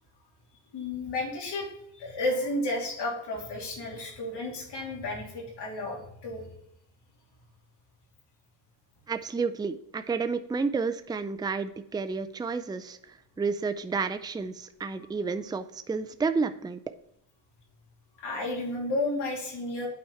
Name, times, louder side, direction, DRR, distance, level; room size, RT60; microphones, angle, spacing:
voice 1, 0.7-1.7 1.9-6.4 18.2-19.9, left 2 dB, 85° left, -2 dB, 3.2 m, -32 dB
voice 2, 9.1-16.8, right 4 dB, 10° right, 9 dB, 0.4 m, -31 dB
8.6 x 4.5 x 5.5 m, 0.77 s
cardioid pair, 130°, 40 cm